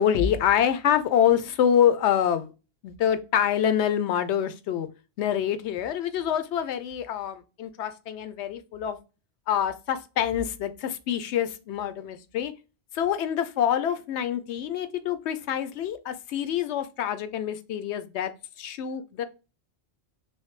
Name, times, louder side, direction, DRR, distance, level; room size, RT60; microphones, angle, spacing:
voice 1, 0.0-2.5 2.8-4.9 5.2-9.0 9.5-12.5 12.9-18.3 18.6-19.2, left 9 dB, 80° left, 0.9 m, -26 dB
3.3 x 3.2 x 3.1 m
omnidirectional pair, 1.1 m